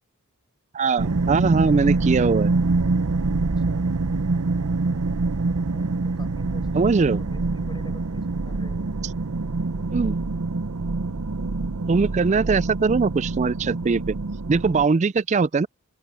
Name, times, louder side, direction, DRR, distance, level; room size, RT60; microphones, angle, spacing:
voice 1, 0.7-2.5 6.7-7.2 9.9-10.2 11.9-14.2 14.5-15.7, right 4 dB, 30° right, 0.3 m, -21 dB
sound 1, 1.0-14.9, right 3 dB, 75° right, 0.8 m, -25 dB
voice 2, 3.4-3.9 5.7-8.9, left 1 dB, 20° left, 6.2 m, -48 dB
open air
head